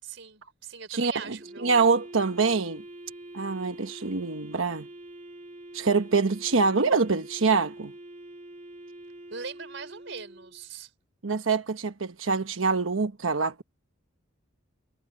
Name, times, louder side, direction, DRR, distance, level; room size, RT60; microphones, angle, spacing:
voice 1, 0.0-1.8 9.3-10.9, right 5 dB, 65° right, 5.1 m, -41 dB
voice 2, 0.9-2.8 3.3-4.9 5.7-7.9 11.2-13.6, right 4 dB, 80° right, 1.1 m, -25 dB
Wind instrument woodwind instrument, 1.4-10.6, right 1 dB, 35° right, 2.5 m, -45 dB
head